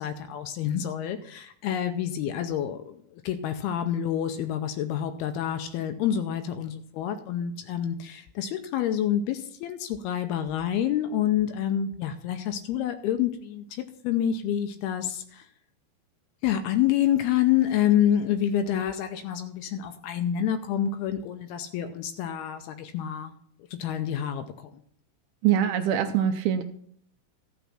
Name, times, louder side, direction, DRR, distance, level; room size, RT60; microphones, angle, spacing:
voice 1, 0.0-15.5 16.4-23.3 23.7-24.7, left 10 dB, 85° left, 8 dB, 2.5 m, -28 dB
voice 2, 25.4-26.6, right 9 dB, 80° right, 6 dB, 2.4 m, -23 dB
13.5 x 6.1 x 5.8 m, 0.66 s
omnidirectional pair, 4.7 m